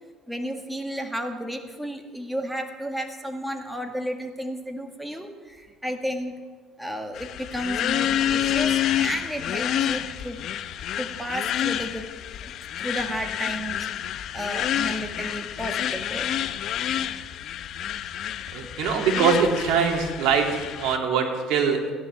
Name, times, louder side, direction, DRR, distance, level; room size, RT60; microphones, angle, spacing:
voice 1, 0.3-6.4 6.8-10.4 10.9-12.1 12.4-12.5 12.8-13.9 14.3-16.3, equal, 5° right, 5 dB, 1.9 m, -32 dB
sound 1, 7.1-21.0, left 10 dB, 60° left, 0.7 m, -28 dB
voice 2, 18.5-20.5 20.8-21.8, right 6 dB, 75° right, 2 dB, 2.8 m, -22 dB
16.0 x 11.0 x 7.4 m, 1.5 s
cardioid pair, 110°, 0 cm